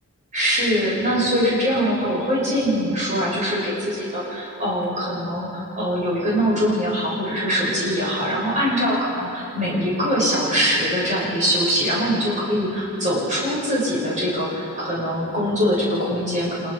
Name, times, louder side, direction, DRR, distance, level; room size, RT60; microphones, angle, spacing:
voice 1, 0.3-16.7, equal, 35° right, -6 dB, 7.5 m, -23 dB
27.0 x 22.0 x 5.8 m, 2.7 s
head